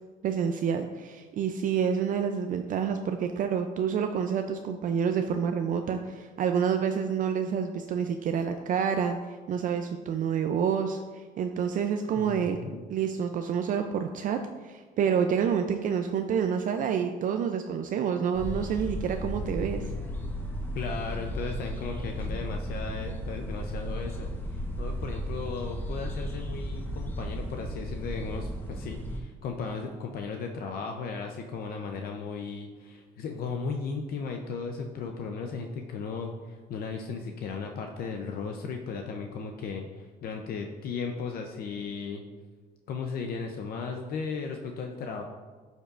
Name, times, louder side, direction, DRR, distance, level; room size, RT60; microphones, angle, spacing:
voice 1, 0.2-9.2 9.5-12.6 12.9-14.4 14.6-19.8, right 7 dB, 50° right, 6 dB, 0.4 m, -28 dB
voice 2, 12.2-12.8 20.7-42.2 42.9-45.2, left 5 dB, 65° left, 3 dB, 0.6 m, -36 dB
sound 1, 18.3-29.2, equal, 10° left, 1.1 m, -35 dB
11.5 x 5.4 x 2.5 m, 1.4 s
cardioid pair, 110°, 17 cm